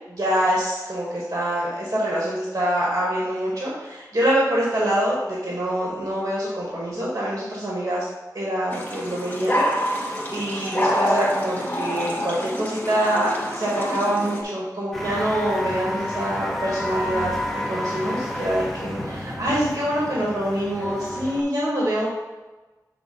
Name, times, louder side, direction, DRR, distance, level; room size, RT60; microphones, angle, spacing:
voice 1, 0.1-8.1 8.3-17.3 17.7-22.1, equal, 45° right, -5 dB, 1.7 m, -25 dB
sound 1, 8.7-14.4, equal, 25° left, 1.3 m, -26 dB
sound 2, 14.9-21.4, left 1 dB, 5° left, 1.0 m, -30 dB
7.6 x 3.4 x 5.4 m, 1.2 s
wide cardioid pair, 80°, 7 cm